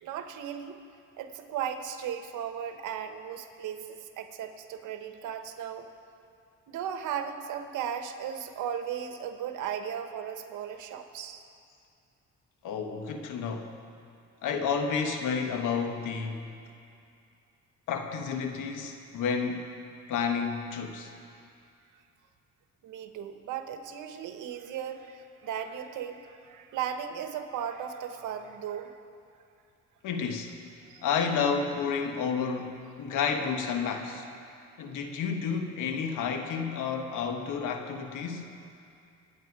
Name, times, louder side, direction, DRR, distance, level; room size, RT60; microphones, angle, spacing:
voice 1, 0.0-0.8 1.2-5.9 6.7-11.5 22.8-29.0 30.8-31.0, right 8 dB, 85° right, 7 dB, 1.2 m, -36 dB
voice 2, 12.6-13.7 14.4-16.5 17.9-19.7 20.1-21.1 30.0-30.5 31.0-34.3 34.8-38.6, left 6 dB, 85° left, 5 dB, 1.4 m, -31 dB
26.0 x 9.1 x 4.8 m, 2.5 s
cardioid pair, 90°, 30 cm